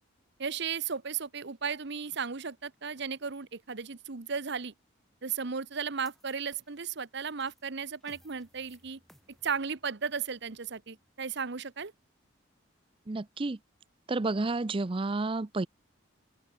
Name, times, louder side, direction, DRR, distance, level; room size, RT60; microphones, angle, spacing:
voice 1, 0.4-4.7 5.2-9.0 9.4-11.9, right 6 dB, 60° right, 1.0 m, -35 dB
sound 1, 6.0-12.3, equal, ahead, 4.5 m, -64 dB
voice 2, 13.1-13.6 14.1-15.7, right 3 dB, 25° right, 0.5 m, -30 dB
open air
head